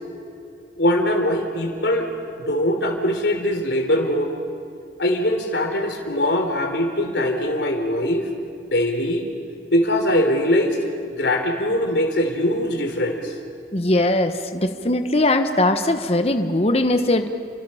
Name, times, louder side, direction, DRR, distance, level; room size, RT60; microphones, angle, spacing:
voice 1, 0.8-2.1 2.4-4.3 5.0-8.3 8.7-9.3 9.7-10.8 11.1-13.4, left 1 dB, 75° left, 4 dB, 3.5 m, -22 dB
voice 2, 13.7-17.3, left 1 dB, 35° left, 7 dB, 1.1 m, -20 dB
30.0 x 24.0 x 5.7 m, 2.5 s
head